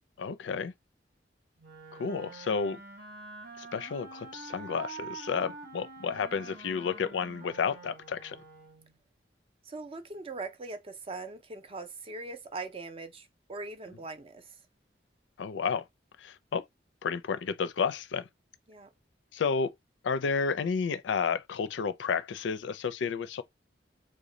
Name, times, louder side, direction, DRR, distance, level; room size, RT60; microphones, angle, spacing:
voice 1, 0.2-0.7 1.9-2.8 3.6-8.4 15.4-15.8 16.2-16.6 17.0-18.3 19.3-19.7 20.0-23.4, left 5 dB, 80° left, 0.4 m, -31 dB
Wind instrument woodwind instrument, 1.6-8.9, right 4 dB, 60° right, 0.8 m, -46 dB
voice 2, 9.7-14.5 18.7-18.9, right 3 dB, 30° right, 0.5 m, -41 dB
3.1 x 2.1 x 3.8 m
head